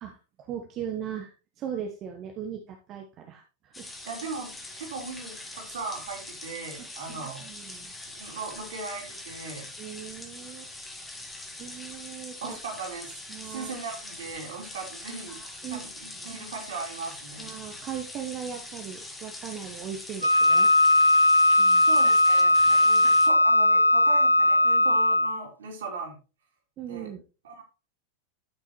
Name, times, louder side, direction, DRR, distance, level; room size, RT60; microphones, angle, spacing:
voice 1, 0.4-3.9 6.8-7.9 9.8-10.7 11.6-12.6 13.3-13.7 15.3-15.8 16.2-16.3 17.4-20.7 21.6-21.8 26.8-27.2, right 9 dB, 35° right, 2 dB, 1.2 m, -38 dB
sound 1, 3.7-23.3, left 2 dB, 10° left, 2.0 m, -43 dB
voice 2, 4.0-7.5 8.2-9.7 12.4-15.4 15.7-17.5 21.8-26.2 26.9-27.1 27.4-27.6, right 4 dB, 60° right, 0 dB, 3.3 m, -38 dB
Wind instrument woodwind instrument, 20.2-25.4, left 1 dB, 85° right, 0.4 m, -19 dB
12.5 x 6.2 x 3.1 m, 0.31 s
figure-of-eight pair, 90°, 0 cm